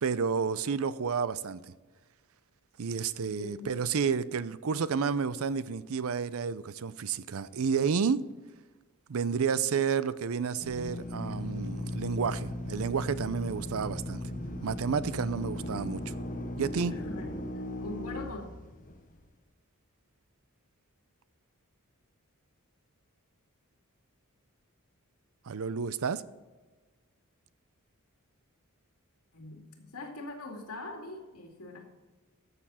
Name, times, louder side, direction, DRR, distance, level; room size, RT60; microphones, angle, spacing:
voice 1, 0.0-1.7 2.8-8.2 9.1-14.2 14.6-16.0 16.6-16.9 25.5-26.2, right 6 dB, 70° right, 0.5 m, -30 dB
voice 2, 3.4-3.7 16.9-17.3 17.8-18.4 29.3-31.8, left 2 dB, 85° left, 2.4 m, -42 dB
Drill, 10.6-19.2, left 1 dB, 35° left, 1.0 m, -37 dB
13.0 x 6.9 x 4.2 m
head